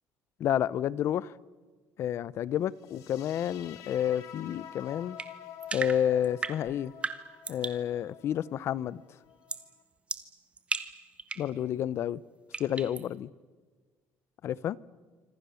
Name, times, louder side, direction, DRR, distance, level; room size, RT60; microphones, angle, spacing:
voice 1, 0.4-1.3 2.0-5.2 5.7-6.9 7.5-9.0 11.4-12.2 12.6-13.3 14.4-14.8, left 10 dB, 50° left, 0.7 m, -30 dB
sound 1, 2.8-9.8, left 10 dB, 80° left, 3.2 m, -49 dB
sound 2, 5.2-7.9 9.5-9.7 10.1-11.5 12.5-13.1, right 4 dB, 20° right, 1.5 m, -36 dB
27.0 x 26.0 x 7.0 m
cardioid pair, 140°, 6 cm